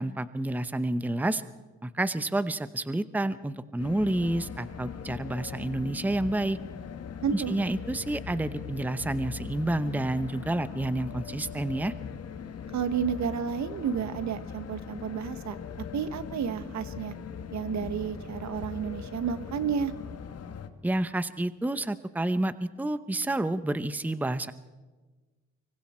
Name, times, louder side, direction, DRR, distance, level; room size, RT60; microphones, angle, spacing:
voice 1, 0.0-1.4 1.8-6.6 7.3-11.9 20.8-24.5, right 1 dB, 5° right, 13 dB, 0.8 m, -29 dB
sound 1, 3.8-20.7, left 7 dB, 55° left, 1.5 m, -40 dB
voice 2, 7.2-7.5 12.7-15.5 15.9-17.1 17.5-19.9, right 7 dB, 65° right, 12 dB, 1.4 m, -31 dB
25.0 x 23.5 x 4.4 m, 1.3 s
cardioid pair, 90°, 30 cm